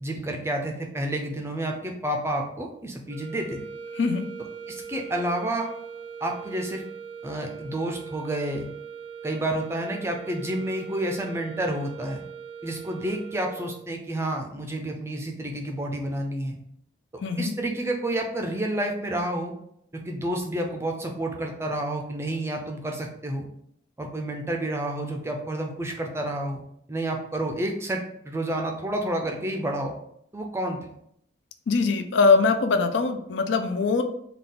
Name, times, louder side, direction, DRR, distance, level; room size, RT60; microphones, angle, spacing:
voice 1, 0.0-3.6 4.7-5.7 6.2-6.8 7.2-8.7 9.2-12.2 12.6-16.6 17.4-19.5 20.1-23.5 24.0-26.6 26.9-29.9 30.3-30.8, right 1 dB, 15° right, 2 dB, 0.4 m, -29 dB
sound 1, 3.1-13.9, right 6 dB, 85° right, 0.4 m, -41 dB
voice 2, 3.9-4.3 17.2-17.5 31.7-34.0, left 4 dB, 70° left, 7 dB, 0.4 m, -22 dB
3.5 x 2.3 x 3.8 m, 0.71 s
head